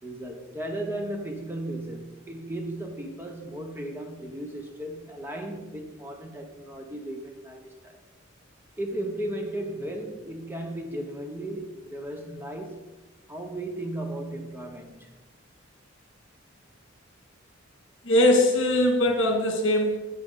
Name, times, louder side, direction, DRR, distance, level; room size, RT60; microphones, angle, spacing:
voice 1, 0.0-8.0 8.8-12.8 13.3-15.1, right 1 dB, 10° right, 0.9 m, -35 dB
voice 2, 18.0-20.0, left 1 dB, 65° left, 2.1 m, -21 dB
9.0 x 8.6 x 3.9 m
head